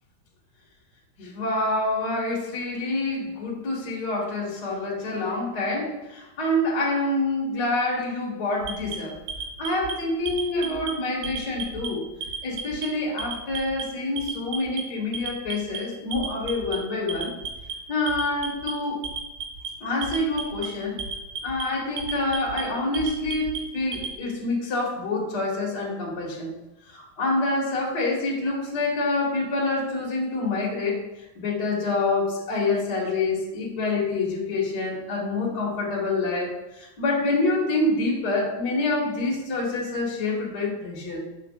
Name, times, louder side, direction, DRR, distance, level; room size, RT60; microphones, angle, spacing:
voice 1, 1.2-9.1 9.6-12.0 12.4-17.3 17.9-19.0 19.8-21.0 21.4-26.5 26.9-31.1 31.3-41.2, left 2 dB, 50° left, -3 dB, 1.2 m, -27 dB
Alarm, 8.6-9.9 10.3-10.9 11.2-11.9 12.2-12.9 13.2-13.8 14.2-14.8 15.1-15.8 16.1-16.8 17.1-17.7 18.1-18.7 19.0-19.7 20.0-20.7 21.0-21.6 22.0-22.6 22.9-24.1, right 6 dB, 75° right, 2.5 m, -33 dB
8.2 x 6.4 x 2.4 m, 0.99 s
omnidirectional pair, 4.2 m